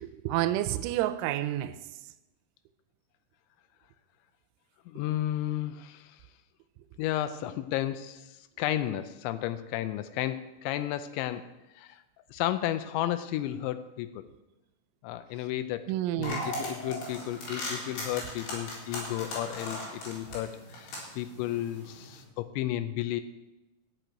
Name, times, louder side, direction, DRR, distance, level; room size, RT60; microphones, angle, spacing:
voice 1, 0.0-1.8 15.9-16.5, right 14 dB, 85° right, 2.8 m, -29 dB
voice 2, 4.9-6.2 7.0-11.4 11.8-12.0 12.3-14.2 15.0-15.9 16.2-23.2, left 13 dB, 85° left, 2.6 m, -33 dB
sound 1, 16.2-22.2, left 1 dB, 60° left, 5.9 m, -38 dB
13.5 x 6.1 x 9.1 m
omnidirectional pair, 5.9 m